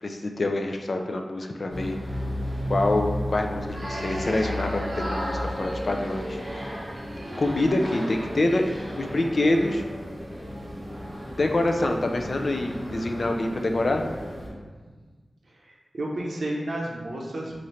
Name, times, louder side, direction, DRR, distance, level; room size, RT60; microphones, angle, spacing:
voice 1, 0.0-2.0 2.7-6.4 7.4-8.7 9.0-9.8 11.4-14.0, left 2 dB, 50° left, 4 dB, 0.4 m, -26 dB
sound 1, 1.7-14.5, equal, 25° right, 1.4 m, -33 dB
voice 2, 15.5-17.5, right 1 dB, 70° right, -2 dB, 0.6 m, -32 dB
3.1 x 2.5 x 4.2 m, 1.4 s
wide cardioid pair, 90°, 0 cm